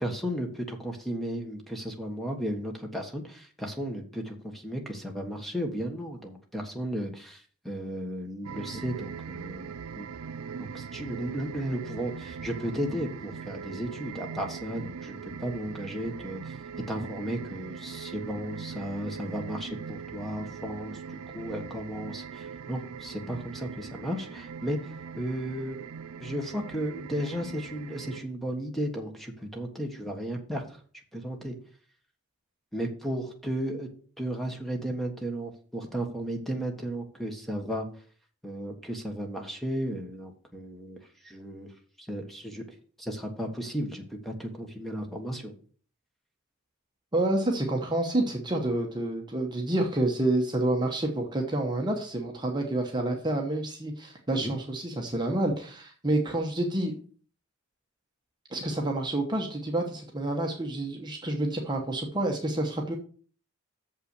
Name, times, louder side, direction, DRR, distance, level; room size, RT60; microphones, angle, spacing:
voice 1, 0.0-10.1 10.6-16.6 16.9-25.8 26.2-30.8 31.1-31.5 32.7-33.9 34.2-37.9 38.4-41.7 42.0-42.6 43.0-45.5 54.4-54.5, equal, ahead, 3 dB, 1.3 m, -34 dB
sound 1, 8.4-28.2, right 6 dB, 75° right, 0.5 m, -41 dB
voice 2, 47.1-57.0 58.5-63.0, right 1 dB, 20° right, 1 dB, 1.0 m, -28 dB
6.9 x 5.7 x 6.6 m, 0.43 s
head